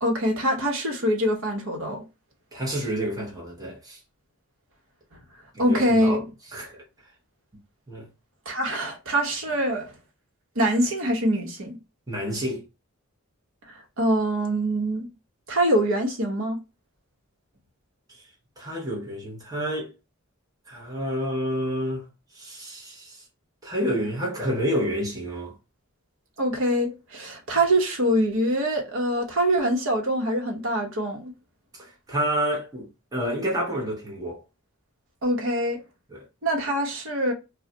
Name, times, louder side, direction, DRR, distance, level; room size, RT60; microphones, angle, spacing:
voice 1, 0.0-2.0 5.6-6.2 8.5-9.9 10.6-11.8 13.7-15.1 15.5-16.6 26.4-31.3 35.2-35.8 36.4-37.3, right 1 dB, 65° right, 0.9 m, -24 dB
voice 2, 2.5-4.0 5.5-6.2 6.5-6.8 7.9-8.1 12.1-12.6 18.6-19.9 20.7-22.1 22.3-23.2 23.6-25.5 31.7-34.4 36.1-36.3, equal, 15° right, 0.8 m, -29 dB
2.3 x 2.1 x 3.7 m
head